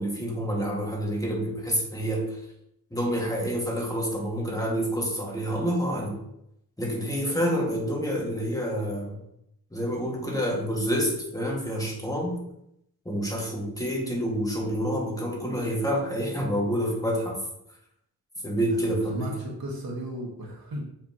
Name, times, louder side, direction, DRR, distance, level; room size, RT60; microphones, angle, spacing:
voice 1, 0.0-2.4 2.9-6.2 6.8-9.2 9.7-12.4 13.1-17.4 18.4-19.4, equal, 10° left, -3 dB, 2.1 m, -28 dB
voice 2, 18.7-20.8, right 1 dB, 70° right, -2 dB, 2.0 m, -35 dB
7.3 x 5.7 x 3.1 m, 0.78 s
cardioid pair, 65°, 38 cm